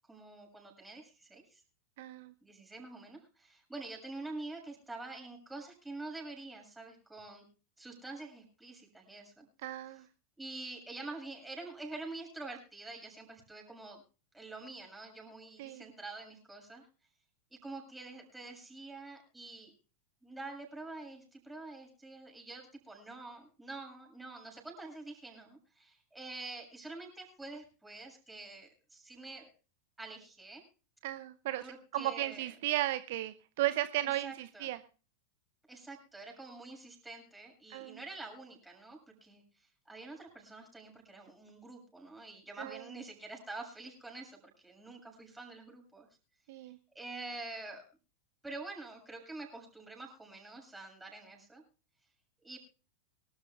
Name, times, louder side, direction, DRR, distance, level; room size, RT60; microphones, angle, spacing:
voice 1, 0.0-1.6 2.4-7.4 7.8-9.5 10.4-14.0 14.3-16.9 17.6-19.7 20.2-29.5 30.0-30.6 31.6-32.5 34.0-34.7 35.7-46.1 47.0-47.8 48.4-51.6 52.4-52.6, right 2 dB, 5° right, 1 dB, 7.0 m, -47 dB
voice 2, 2.0-2.3 9.6-10.0 15.6-15.8 31.0-31.6 31.9-34.8 37.7-38.0 42.6-42.8 46.5-46.8, right 15 dB, 50° right, 13 dB, 0.8 m, -35 dB
24.5 x 13.0 x 2.3 m, 0.34 s
figure-of-eight pair, 90°, 0 cm